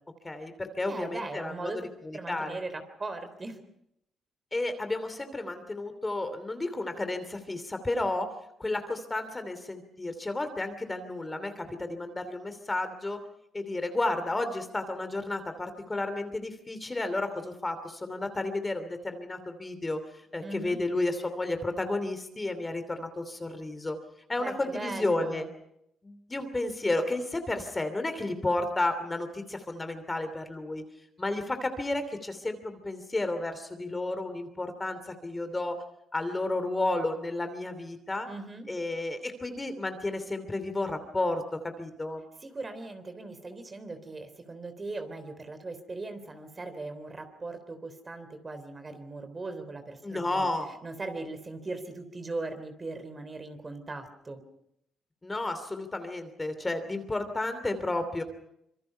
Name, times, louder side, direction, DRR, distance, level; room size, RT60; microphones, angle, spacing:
voice 1, 0.2-1.7 2.0-2.6 4.5-8.3 8.6-13.2 13.5-20.0 20.3-24.0 24.3-25.5 26.0-30.8 31.2-35.8 36.1-38.3 38.7-42.2 50.0-50.7 55.2-58.2, left 2 dB, 20° left, 9 dB, 2.9 m, -32 dB
voice 2, 0.8-3.6 20.4-20.8 24.4-25.5 38.3-38.7 42.4-50.5 50.8-54.4, right 3 dB, 30° right, 9 dB, 3.6 m, -39 dB
26.0 x 23.0 x 5.7 m, 0.77 s
cardioid pair, 90°, 0 cm